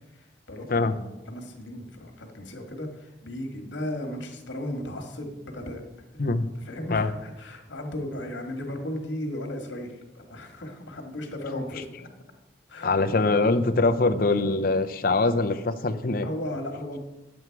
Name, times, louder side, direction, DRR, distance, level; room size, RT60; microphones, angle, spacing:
voice 1, 0.1-5.8 6.1-6.2 6.6-12.1 12.7-12.9 16.2-17.0, left 1 dB, 85° left, 4 dB, 1.7 m, -35 dB
voice 2, 12.8-16.3, left 3 dB, 50° left, 9 dB, 0.6 m, -23 dB
9.5 x 7.8 x 4.6 m, 1.1 s
head